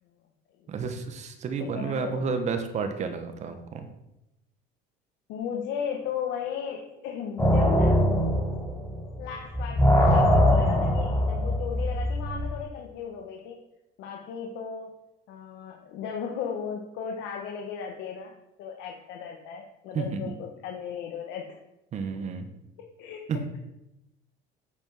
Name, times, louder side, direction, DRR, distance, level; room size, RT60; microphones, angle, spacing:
voice 1, 0.7-3.9 19.9-20.3 21.9-22.5 23.3-23.5, right 5 dB, 35° right, 7 dB, 1.3 m, -31 dB
voice 2, 1.6-2.3 5.3-8.0 9.2-13.6 14.0-14.9 15.3-21.5 22.8-23.2, left 7 dB, 70° left, 1 dB, 1.5 m, -36 dB
sound 1, 7.4-9.3 9.5-12.5, equal, 15° left, 3.1 m, -22 dB
8.8 x 7.3 x 5.7 m, 0.89 s
cardioid pair, 145°, 19 cm